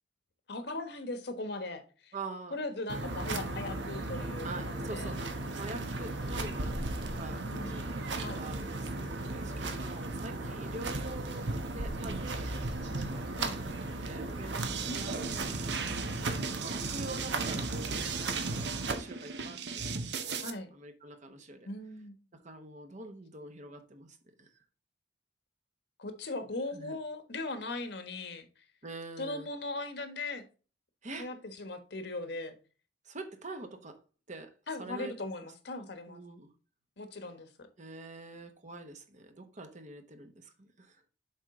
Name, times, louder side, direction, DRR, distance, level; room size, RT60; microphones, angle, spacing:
voice 1, 0.5-2.1 2.5-4.5 4.9-5.2 7.5-8.4 13.4-13.6 14.9-15.5 20.4-20.7 21.6-22.2 26.0-28.6 29.2-30.4 31.1-32.5 34.7-36.2 37.0-37.7, left 2 dB, 65° left, 1.3 m, -39 dB
voice 2, 2.1-2.6 4.4-6.8 7.1-7.9 8.3-13.7 14.0-15.2 15.7-20.0 20.7-21.7 22.3-24.5 26.7-27.0 28.8-29.5 31.0-31.3 33.0-34.0 34.3-35.1 36.1-36.5 37.8-41.0, right 2 dB, 45° right, 1.1 m, -45 dB
sound 1, 2.9-18.9, right 2 dB, 85° right, 1.2 m, -36 dB
sound 2, 14.6-20.5, right 5 dB, 70° right, 0.9 m, -37 dB
7.3 x 4.9 x 3.7 m
head